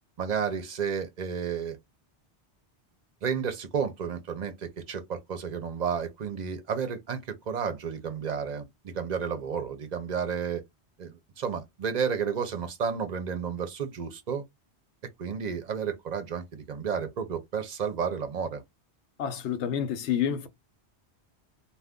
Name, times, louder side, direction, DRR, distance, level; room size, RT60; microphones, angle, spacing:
voice 1, 0.2-1.8 3.2-10.6 11.0-14.4 15.2-18.6, right 6 dB, 50° right, 0.6 m, -32 dB
voice 2, 19.2-20.5, left 9 dB, 80° left, 0.9 m, -28 dB
2.4 x 2.4 x 3.5 m
omnidirectional pair, 1.1 m